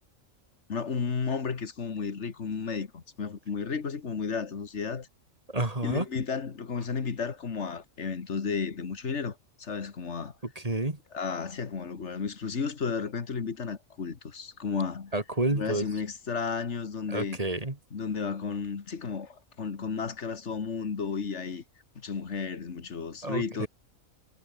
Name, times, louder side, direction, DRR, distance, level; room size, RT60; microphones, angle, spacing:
voice 1, 0.7-5.1 5.8-10.3 11.1-15.1 15.5-17.4 17.9-21.6 22.0-23.7, left 5 dB, 55° left, 2.0 m, -33 dB
voice 2, 5.5-6.0 10.6-11.0 15.1-15.8 17.1-17.7 23.2-23.7, right 2 dB, 25° right, 2.7 m, -29 dB
omnidirectional pair, 1.4 m